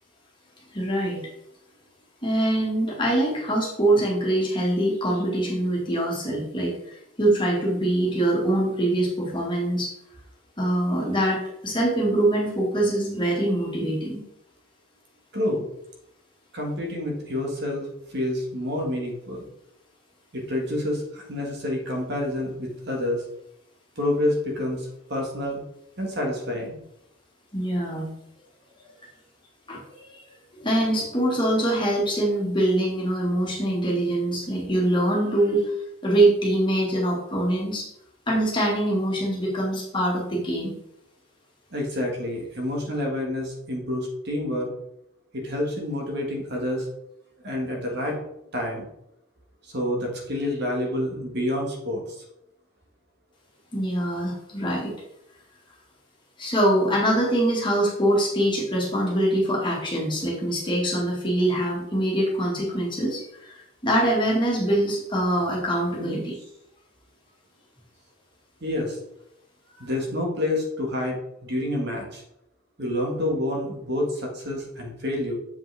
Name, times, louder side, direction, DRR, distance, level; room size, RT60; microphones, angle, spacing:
voice 1, 0.7-1.2 2.2-9.9 10.6-14.2 27.5-28.1 29.7-30.0 30.5-35.7 36.0-37.8 38.3-40.7 53.7-54.9 56.4-66.4, right 1 dB, 25° left, -4 dB, 1.8 m, -24 dB
voice 2, 15.3-15.6 16.5-19.5 20.3-23.2 24.0-25.6 26.0-26.8 41.7-44.7 45.3-46.9 47.4-48.2 48.5-48.9 49.6-52.2 68.6-69.0 69.8-72.2 72.8-75.3, left 1 dB, 50° right, 0 dB, 1.7 m, -28 dB
7.3 x 5.4 x 3.4 m, 0.79 s
head